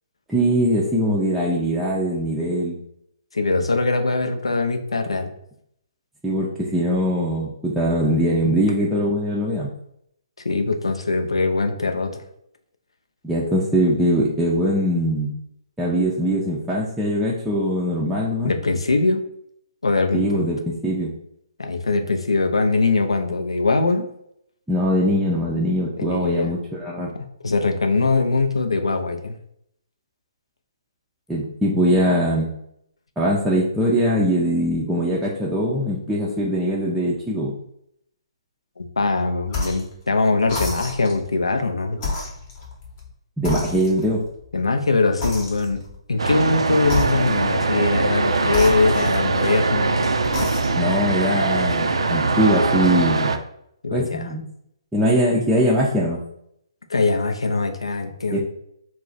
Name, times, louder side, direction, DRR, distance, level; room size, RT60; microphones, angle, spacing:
voice 1, 0.3-2.8 6.2-9.7 13.2-15.3 15.8-18.5 20.1-20.6 20.8-21.1 24.7-27.1 31.3-32.5 33.2-37.5 43.4-44.3 50.7-53.4 53.9-54.4 54.9-56.2 58.3-58.4, equal, 5° right, -6 dB, 0.4 m, -21 dB
voice 2, 3.3-5.3 10.4-12.2 18.4-19.2 19.8-20.4 21.6-24.1 26.0-26.5 27.4-29.3 38.8-42.0 44.5-45.8 46.1-50.0 53.8-54.3 56.9-58.4, left 3 dB, 80° left, 5 dB, 0.4 m, -22 dB
sound 1, 39.5-39.9 40.5-41.2 42.0-43.1 43.5-44.2 45.2-46.0 46.8-47.6 48.5-49.6 50.2-50.9, left 3 dB, 35° left, 0.8 m, -30 dB
sound 2, 46.2-53.4, right 3 dB, 75° right, 0.3 m, -22 dB
2.3 x 2.0 x 3.8 m, 0.73 s
figure-of-eight pair, 135°, 3 cm